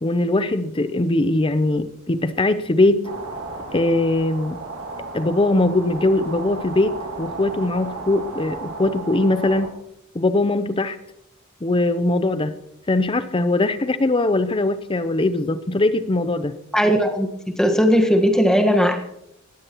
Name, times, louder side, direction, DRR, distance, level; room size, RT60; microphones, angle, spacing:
voice 1, 0.0-3.1 3.7-4.6 5.1-9.8 10.1-11.0 11.6-12.5 12.9-16.6, left 2 dB, 25° left, 13 dB, 0.6 m, -21 dB
sound 1, 3.0-9.7, right 3 dB, 80° right, 2.3 m, -34 dB
voice 2, 16.7-17.3 17.5-19.0, equal, 5° left, 3 dB, 1.4 m, -17 dB
19.0 x 14.5 x 3.0 m, 0.80 s
head